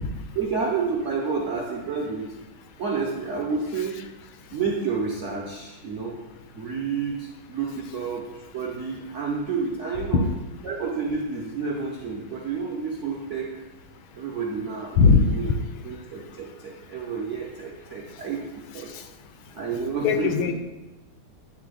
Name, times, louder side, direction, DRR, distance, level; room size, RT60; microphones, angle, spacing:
voice 1, 0.3-2.3 2.8-4.0 4.5-6.2 6.5-10.3 10.6-13.6 14.1-15.5 15.8-18.9 19.5-20.4, right 5 dB, 70° right, -3 dB, 0.7 m, -30 dB
voice 2, 20.0-20.5, left 6 dB, 80° left, 7 dB, 1.4 m, -18 dB
8.9 x 3.3 x 3.8 m, 1.1 s
omnidirectional pair, 2.3 m